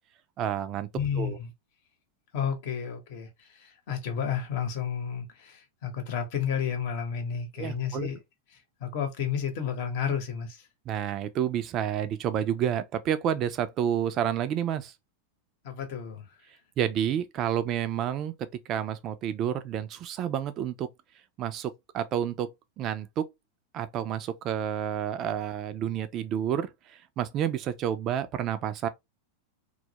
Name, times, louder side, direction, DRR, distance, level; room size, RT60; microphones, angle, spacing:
voice 1, 0.4-0.9 1.2-1.4 7.6-8.1 10.9-14.9 16.8-20.9 21.4-22.5 22.8-23.3 23.7-28.9, right 9 dB, 40° right, 0.4 m, -30 dB
voice 2, 0.9-1.5 2.3-8.2 8.8-10.6 15.6-16.3, left 7 dB, 60° left, 0.9 m, -31 dB
2.3 x 2.0 x 2.8 m
hypercardioid pair, 120°, 0 cm